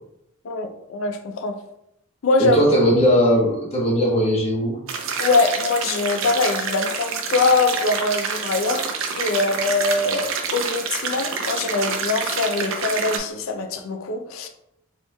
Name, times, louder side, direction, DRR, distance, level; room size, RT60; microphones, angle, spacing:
voice 1, 0.4-1.6 2.2-2.6 5.2-14.5, left 3 dB, 75° left, 0.4 m, -23 dB
voice 2, 2.4-4.8, equal, 30° left, 1.0 m, -18 dB
sound 1, 4.9-13.2, right 5 dB, 70° right, 0.5 m, -27 dB
4.4 x 3.0 x 2.2 m
head